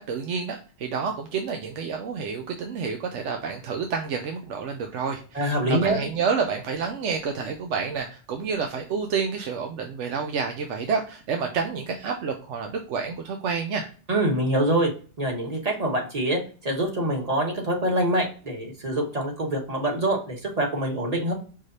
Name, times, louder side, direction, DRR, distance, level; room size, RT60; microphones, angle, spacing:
voice 1, 0.0-13.9, right 5 dB, 85° right, 4 dB, 1.0 m, -29 dB
voice 2, 5.3-6.0 14.1-14.9 15.2-21.3, right 1 dB, 35° right, 0 dB, 1.3 m, -25 dB
5.7 x 3.2 x 2.6 m, 0.38 s
omnidirectional pair, 1.2 m